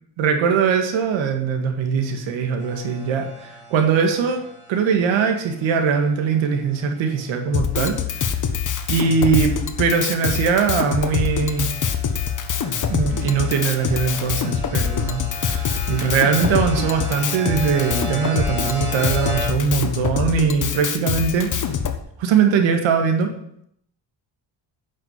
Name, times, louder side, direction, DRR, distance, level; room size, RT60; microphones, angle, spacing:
voice 1, 0.2-4.4 4.7-8.0 8.9-11.8 12.9-21.5 22.2-23.3, right 6 dB, 85° right, 5 dB, 2.0 m, -21 dB
sound 1, 2.6-7.2 8.0-8.3 8.7-19.5, equal, 25° right, 3.7 m, -36 dB
Drum kit, 7.5-22.0, left 7 dB, 45° left, 1.4 m, -25 dB
9.9 x 6.5 x 8.3 m, 0.71 s
cardioid pair, 90°, 45 cm